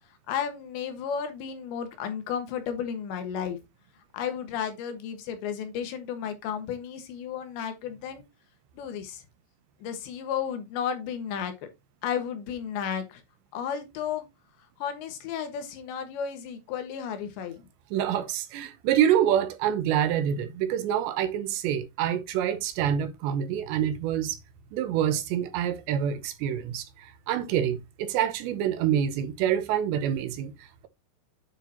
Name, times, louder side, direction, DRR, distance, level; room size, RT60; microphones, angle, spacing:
voice 1, 0.3-3.6 4.1-8.2 8.7-9.2 9.8-11.5 12.0-13.2 13.5-14.2 14.8-17.7, left 8 dB, 75° left, 3.5 m, -33 dB
voice 2, 17.9-24.4 24.7-30.9, right 10 dB, 75° right, 2.9 m, -27 dB
9.1 x 6.5 x 2.8 m
omnidirectional pair, 5.4 m